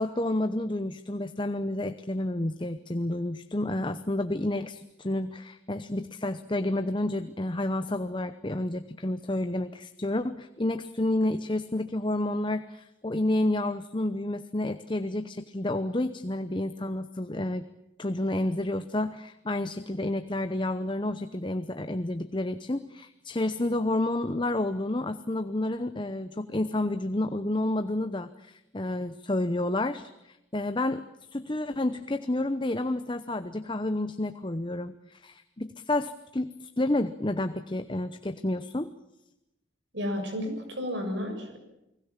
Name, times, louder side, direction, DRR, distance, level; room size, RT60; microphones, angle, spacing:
voice 1, 0.0-17.7 18.0-31.0 31.3-38.9, left 1 dB, 25° left, 10 dB, 0.8 m, -30 dB
voice 2, 39.9-41.6, left 1 dB, 65° right, 5 dB, 6.9 m, -32 dB
30.0 x 20.0 x 7.4 m, 0.89 s
head